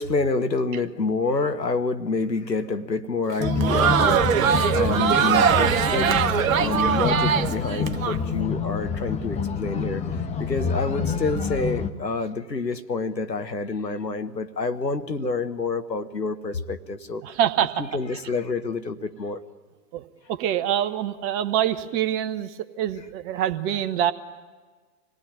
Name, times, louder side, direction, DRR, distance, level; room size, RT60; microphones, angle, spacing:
voice 1, 0.0-4.2 4.7-6.1 6.5-10.0 10.4-17.2 17.8-19.4, left 3 dB, 85° left, 9 dB, 1.3 m, -27 dB
Crowd, 3.3-8.2, right 8 dB, 55° right, 1.1 m, -21 dB
sound 1, 3.4-11.9, left 5 dB, 15° left, 1.0 m, -27 dB
voice 2, 17.2-17.8 19.9-20.0 20.3-24.1, right 10 dB, 25° right, 10 dB, 1.0 m, -25 dB
26.0 x 18.5 x 10.0 m, 1.4 s
figure-of-eight pair, 105°, 49 cm